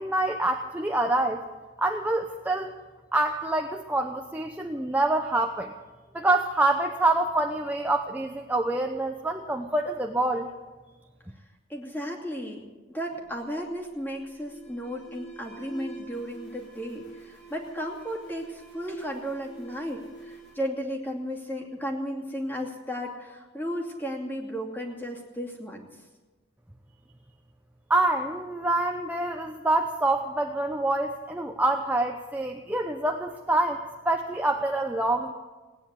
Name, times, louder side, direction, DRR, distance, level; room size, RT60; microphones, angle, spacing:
voice 1, 0.0-1.5 1.8-2.7 3.1-5.7 6.1-10.5 27.9-35.3, right 2 dB, 10° right, 3 dB, 0.7 m, -26 dB
voice 2, 11.7-12.6 12.9-26.0, equal, 10° left, -1 dB, 2.5 m, -34 dB
Alarm, 13.1-21.7, right 2 dB, 75° left, 5.6 m, -47 dB
18.0 x 9.7 x 8.3 m, 1.3 s
head